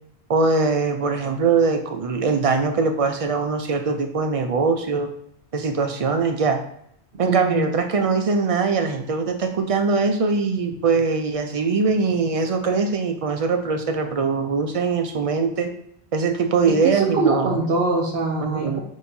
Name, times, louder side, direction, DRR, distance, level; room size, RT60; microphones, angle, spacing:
voice 1, 0.3-5.1 5.5-6.6 7.2-15.7 16.1-17.6 18.4-18.8, right 4 dB, 55° right, 5 dB, 0.4 m, -22 dB
voice 2, 7.2-7.6 16.8-18.8, right 3 dB, 75° right, -2 dB, 1.0 m, -23 dB
6.2 x 2.7 x 2.6 m, 0.71 s
omnidirectional pair, 1.1 m